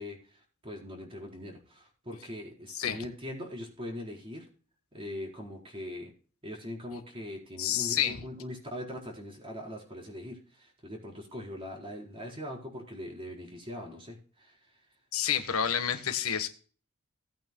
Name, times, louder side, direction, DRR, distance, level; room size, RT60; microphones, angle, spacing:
voice 1, 0.0-4.5 4.9-6.1 6.4-14.7, left 1 dB, 25° right, -1 dB, 4.4 m, -41 dB
voice 2, 2.7-3.0 7.6-8.2 15.1-16.5, left 8 dB, 90° left, 8 dB, 1.3 m, -29 dB
18.0 x 8.9 x 2.2 m, 0.40 s
head